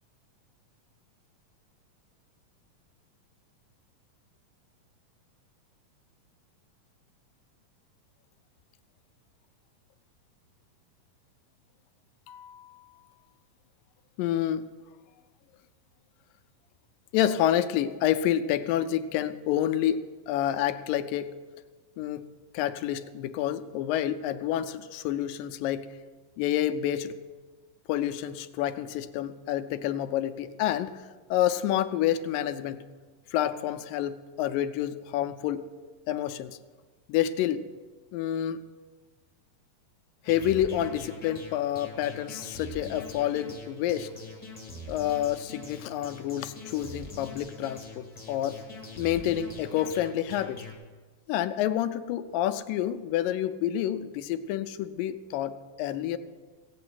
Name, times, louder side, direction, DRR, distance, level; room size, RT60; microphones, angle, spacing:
voice 1, 12.3-13.0 14.2-14.7 17.1-21.3 22.0-22.3 22.5-25.9 26.4-27.2 27.9-32.9 33.3-35.7 36.1-36.6 37.1-37.7 38.1-38.6 40.3-44.1 44.9-48.6 49.0-50.6 51.3-56.2, left 11 dB, 85° left, 11 dB, 2.3 m, -28 dB
sound 1, 40.2-50.7, left 2 dB, 25° left, 1.1 m, -44 dB
16.5 x 8.6 x 6.0 m, 1.4 s
omnidirectional pair, 3.9 m